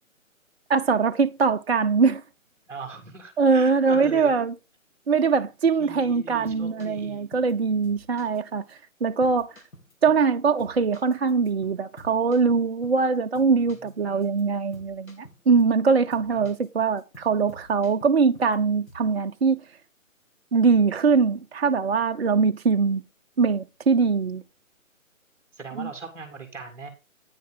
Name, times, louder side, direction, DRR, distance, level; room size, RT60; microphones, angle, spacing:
voice 1, 0.7-2.2 3.4-4.5 5.1-8.6 9.0-9.5 10.0-19.6 20.5-23.0 23.4-24.4 25.8-25.9, right 5 dB, 50° right, 0.5 m, -22 dB
voice 2, 2.7-4.4 5.8-7.2 14.0-14.3 25.6-26.9, right 4 dB, 5° right, 2.0 m, -40 dB
sound 1, 6.2-7.5 7.8-8.4 8.7-8.8 9.2-10.3 10.6-13.1 13.3-13.9 14.2-14.4 14.7-15.8 16.1-16.7 17.0-18.6 18.9-19.1, equal, 80° left, 2.7 m, -50 dB
9.6 x 7.7 x 3.9 m
figure-of-eight pair, 145°, 41 cm